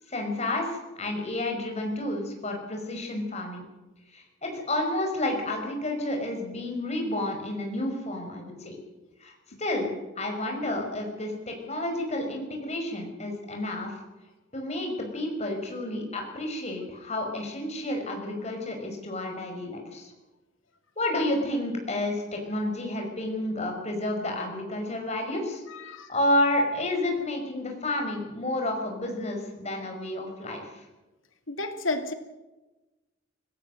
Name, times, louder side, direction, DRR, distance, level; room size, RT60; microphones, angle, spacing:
voice 1, 0.1-3.6 4.1-8.8 9.2-9.3 9.6-13.9 14.5-20.1 21.0-25.6 25.9-30.8, left 1 dB, 35° left, 2 dB, 5.4 m, -30 dB
voice 2, 25.7-26.1 31.5-32.1, left 2 dB, 90° left, 6 dB, 2.6 m, -31 dB
25.0 x 17.5 x 6.6 m, 1.1 s
head